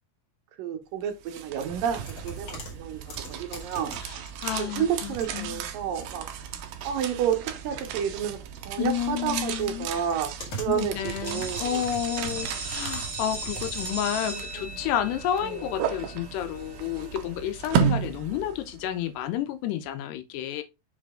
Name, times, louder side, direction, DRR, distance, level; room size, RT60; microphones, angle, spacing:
voice 1, 0.6-4.0 4.6-6.3 6.8-10.3 10.6-11.8 14.3-14.7 15.4-15.6, right 8 dB, 75° right, 2.1 m, -30 dB
sound 1, 1.0-19.0, right 7 dB, 90° right, 1.7 m, -34 dB
sound 2, 1.7-13.8, right 2 dB, 40° left, 2.1 m, -43 dB
voice 2, 4.0-5.6 8.8-9.9 10.7-20.6, left 10 dB, 80° left, 2.9 m, -31 dB
sound 3, 11.3-16.9, right 2 dB, 40° right, 2.4 m, -37 dB
6.3 x 5.0 x 3.6 m
omnidirectional pair, 4.8 m